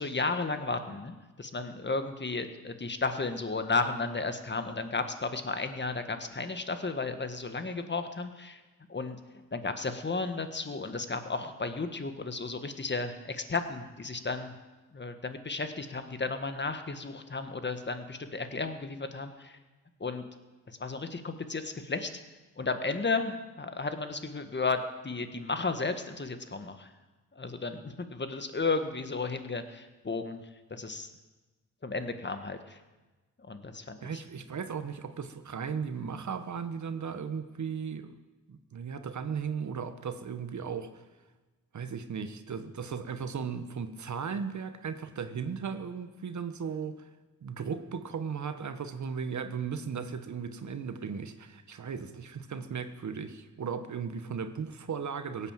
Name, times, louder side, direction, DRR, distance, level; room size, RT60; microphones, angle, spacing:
voice 1, 0.0-8.6 8.9-9.2 9.5-14.5 14.9-19.6 20.0-20.2 20.7-22.1 22.6-26.9 27.3-30.4 30.7-31.1 31.8-32.8 33.5-34.1, left 3 dB, 30° left, 8 dB, 1.6 m, -33 dB
voice 2, 34.0-38.1 38.5-41.0 41.7-47.1 47.4-55.5, right 6 dB, 60° right, 10 dB, 1.2 m, -36 dB
17.0 x 8.3 x 7.5 m, 1.2 s
cardioid pair, 60°, 34 cm